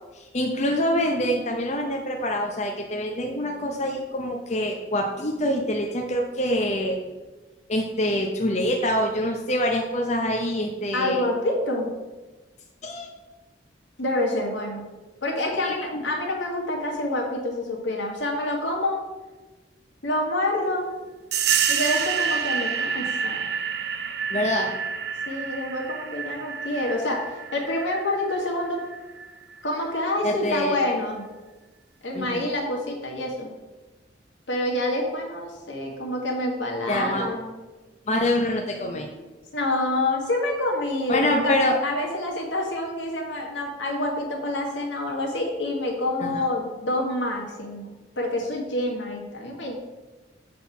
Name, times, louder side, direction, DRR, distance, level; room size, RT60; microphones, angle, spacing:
voice 1, 0.1-7.0 7.7-11.2 12.8-13.1 15.6-16.0 24.3-24.7 30.2-30.8 32.1-32.5 36.9-37.3 38.1-39.1 41.1-41.8 46.2-46.4, left 1 dB, 40° left, 1 dB, 0.6 m, -25 dB
voice 2, 10.9-11.9 14.0-14.8 15.2-19.0 20.0-20.9 21.7-23.4 25.3-27.2 27.5-28.8 29.6-31.2 32.0-33.5 34.5-37.5 39.5-49.7, left 1 dB, 80° left, 0 dB, 1.9 m, -27 dB
sound 1, 21.3-29.6, right 7 dB, 60° right, 0.6 m, -28 dB
7.7 x 4.2 x 5.8 m, 1.2 s
head